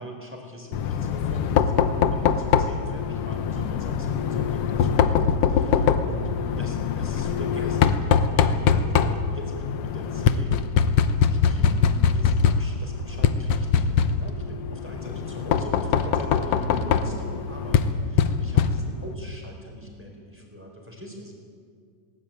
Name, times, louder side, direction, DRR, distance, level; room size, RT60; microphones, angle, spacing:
voice 1, 0.0-6.3 6.6-10.6 11.3-21.3, equal, 5° right, 1 dB, 3.9 m, -41 dB
Knock, 0.7-19.1, left 7 dB, 85° left, 1.3 m, -23 dB
20.5 x 18.0 x 9.0 m, 2.1 s
omnidirectional pair, 4.0 m